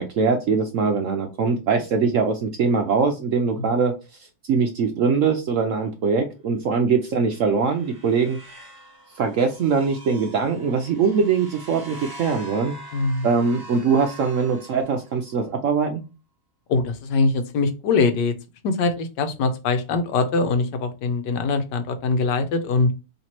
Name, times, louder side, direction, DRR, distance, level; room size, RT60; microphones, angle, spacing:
voice 1, 0.0-8.4 9.1-12.7 13.2-16.0, right 5 dB, 70° right, 5 dB, 0.8 m, -22 dB
sound 1, 7.1-15.4, right 2 dB, 15° right, 1.0 m, -43 dB
voice 2, 12.9-13.3 16.7-18.3 18.6-22.9, left 3 dB, 80° left, 7 dB, 1.4 m, -22 dB
3.3 x 3.0 x 4.2 m, 0.29 s
omnidirectional pair, 1.9 m